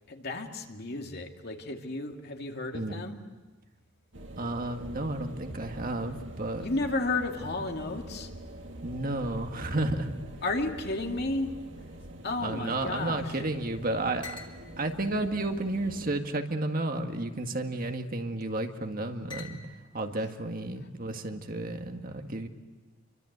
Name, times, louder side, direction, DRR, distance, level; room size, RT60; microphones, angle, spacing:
voice 1, 0.1-3.2 6.6-8.3 10.4-11.5 12.2-13.4 20.1-20.3, left 2 dB, 55° left, 3 dB, 2.5 m, -33 dB
voice 2, 2.7-3.0 4.4-6.7 8.8-10.2 12.4-14.3 14.8-19.6 19.9-22.5, right 2 dB, 45° right, 5 dB, 1.9 m, -32 dB
sound 1, 4.1-16.1, right 1 dB, 70° right, 2.7 m, -44 dB
sound 2, 11.7-13.4 13.6-13.7 14.2-14.6 15.3-16.2 17.0-17.4 18.4-18.8 19.3-20.0, left 5 dB, 25° left, 2.9 m, -49 dB
28.0 x 24.0 x 8.1 m, 1.3 s
head